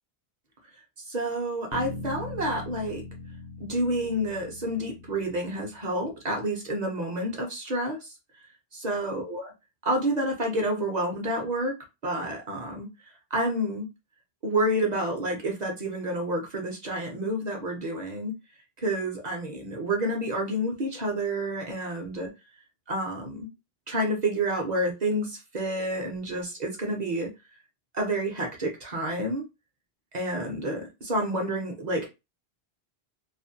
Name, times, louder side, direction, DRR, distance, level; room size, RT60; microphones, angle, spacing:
voice 1, 1.0-3.0 3.6-8.1 8.7-9.5 9.8-11.7 12.0-12.9 13.3-13.9 14.4-18.3 18.8-22.3 22.9-23.5 23.9-27.3 27.9-29.5 30.1-32.1, right 1 dB, 50° right, 2 dB, 0.6 m, -29 dB
sound 1, 1.7-6.1, left 2 dB, 70° left, 0.8 m, -41 dB
2.4 x 2.1 x 2.6 m, 0.25 s
omnidirectional pair, 1.1 m